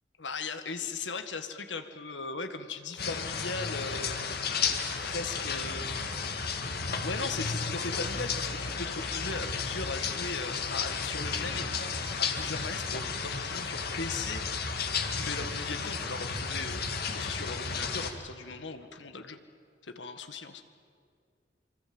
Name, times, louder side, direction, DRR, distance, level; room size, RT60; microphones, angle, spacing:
voice 1, 0.2-4.2 5.0-5.9 6.9-11.9 12.2-14.7 15.2-16.9 17.2-19.4 19.8-20.6, left 4 dB, 75° left, 8 dB, 1.7 m, -38 dB
sound 1, 3.0-18.1, left 5 dB, 60° left, 2.0 m, -33 dB
26.0 x 25.0 x 7.9 m, 2.2 s
head